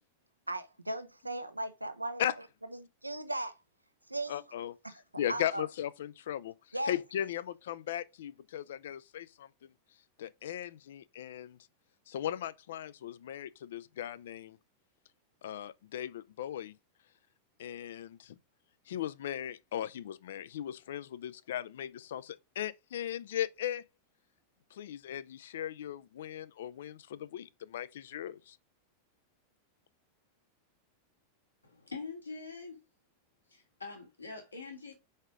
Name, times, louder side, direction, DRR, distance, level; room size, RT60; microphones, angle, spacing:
voice 1, 0.5-2.2 2.7-3.6 4.1-4.4 4.8-5.0 5.3-5.7 6.7-7.0, right 1 dB, 85° right, 0.6 m, -37 dB
voice 2, 4.3-4.7 5.2-6.5 6.9-9.5 10.2-11.6 12.1-14.6 15.4-16.7 17.6-18.4 18.9-23.8 24.7-28.6, left 11 dB, 60° left, 0.4 m, -37 dB
voice 3, 31.6-32.8 33.5-34.9, left 4 dB, 80° left, 2.1 m, -44 dB
4.9 x 4.2 x 4.9 m
figure-of-eight pair, 90°, 0 cm